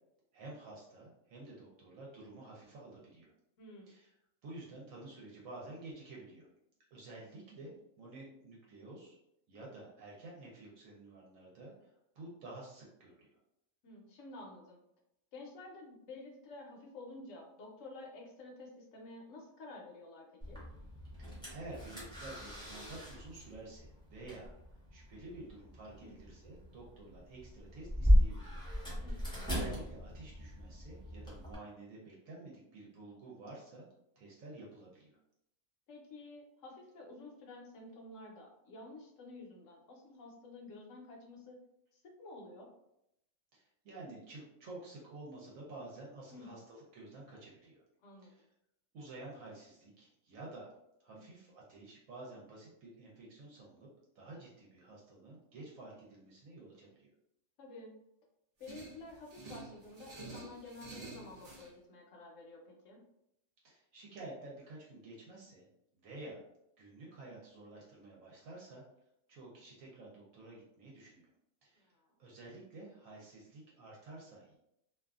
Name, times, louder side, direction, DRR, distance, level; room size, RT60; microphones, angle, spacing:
voice 1, 0.3-3.3 3.9-4.1 4.4-6.5 6.9-9.2 9.5-13.3 21.2-24.5 24.9-28.6 29.1-33.9 34.2-35.2 43.5-47.8 48.2-48.5 48.9-50.7 51.0-53.9 54.1-57.1 63.6-65.7 65.9-66.4 66.8-68.8 69.3-71.3 71.6-71.9 72.2-74.6, right 2 dB, 70° right, -4 dB, 1.0 m, -51 dB
voice 2, 3.6-3.9 13.8-14.8 15.3-20.6 26.0-26.1 29.0-29.2 35.9-41.6 41.9-42.7 46.3-46.5 48.0-48.3 51.1-51.2 57.6-57.9 58.6-63.0 71.7-72.1, left 2 dB, 65° left, 0 dB, 1.0 m, -51 dB
sound 1, 20.4-31.5, equal, 5° left, 0.5 m, -35 dB
sound 2, 58.6-61.7, right 3 dB, 90° right, 0.3 m, -50 dB
2.6 x 2.4 x 2.3 m, 0.80 s
omnidirectional pair, 1.5 m